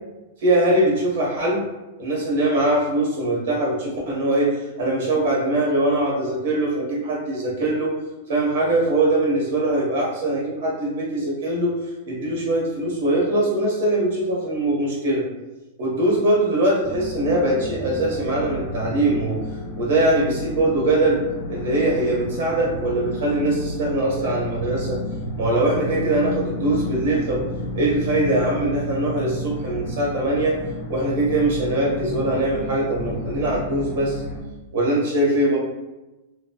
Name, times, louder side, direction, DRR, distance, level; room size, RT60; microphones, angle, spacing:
voice 1, 0.4-1.6 2.0-7.9 8.3-11.7 12.1-15.2 15.8-19.4 19.8-25.0 25.4-27.4 27.7-30.6 30.9-34.2 34.7-35.6, right 1 dB, 65° right, -4 dB, 1.2 m, -22 dB
sound 1, 16.8-34.4, left 1 dB, 30° left, 0.4 m, -31 dB
3.0 x 2.3 x 2.3 m, 1.1 s
supercardioid pair, 155°, 0 cm